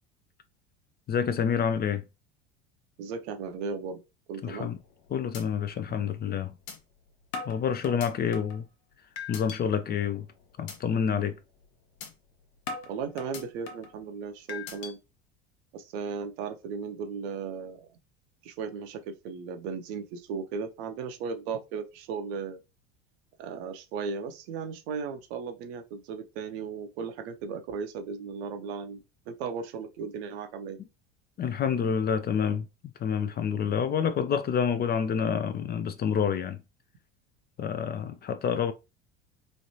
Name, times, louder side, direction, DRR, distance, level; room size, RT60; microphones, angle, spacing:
voice 1, 1.1-2.0 4.4-4.8 5.1-6.5 7.5-8.6 9.3-10.3 10.6-11.4 31.4-32.7 33.0-36.6 37.6-38.7, left 7 dB, 30° left, 0.4 m, -28 dB
voice 2, 3.0-4.0 4.3-4.7 5.8-6.0 12.9-15.0 15.7-17.9 18.4-22.6 23.4-29.0 29.3-30.8, right 5 dB, 70° right, 0.8 m, -36 dB
sound 1, 4.8-5.0 5.3-5.4 5.9-6.0 6.7-6.8 7.3-8.6 9.2-9.6 10.0-10.3 10.7-10.8 11.2-11.4 12.0-12.1 12.7-13.9 14.5-14.9, left 5 dB, 70° left, 0.9 m, -39 dB
3.2 x 2.5 x 2.8 m
hypercardioid pair, 80°, 33 cm